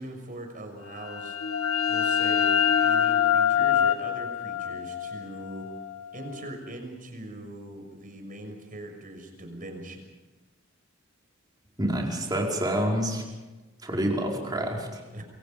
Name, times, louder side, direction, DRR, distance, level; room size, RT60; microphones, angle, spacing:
voice 1, 0.0-1.4 1.9-5.7 6.1-10.0 15.1-15.2, right 1 dB, 40° right, 4 dB, 6.2 m, -41 dB
sound 1, 0.9-6.4, left 9 dB, 80° left, 2.0 m, -25 dB
voice 2, 11.8-13.2 13.8-15.0, right 1 dB, 20° right, -1 dB, 4.9 m, -27 dB
28.5 x 24.0 x 5.3 m, 1.2 s
head